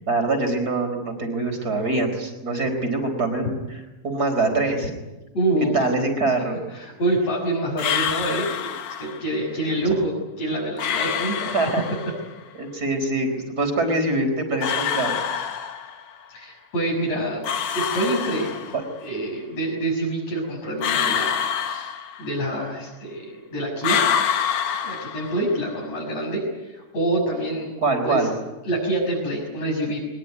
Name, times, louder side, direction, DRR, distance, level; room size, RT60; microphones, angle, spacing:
voice 1, 0.1-4.9 5.7-6.6 9.5-9.9 11.4-11.9 12.5-15.2 18.7-18.8 27.8-28.4, right 2 dB, 30° right, 5 dB, 4.6 m, -24 dB
voice 2, 5.3-5.9 6.7-8.7 9.0-11.6 16.3-17.4 17.7-18.5 19.0-21.9 22.2-24.0 24.8-27.7 28.0-28.3 28.6-30.0, right 1 dB, 55° left, -4 dB, 7.9 m, -26 dB
sound 1, 7.8-9.3 10.8-12.3 14.6-16.2 17.4-19.0 20.8-22.6 23.8-25.7, left 8 dB, 85° left, 3.1 m, -26 dB
23.0 x 21.0 x 9.5 m, 1.1 s
omnidirectional pair, 3.5 m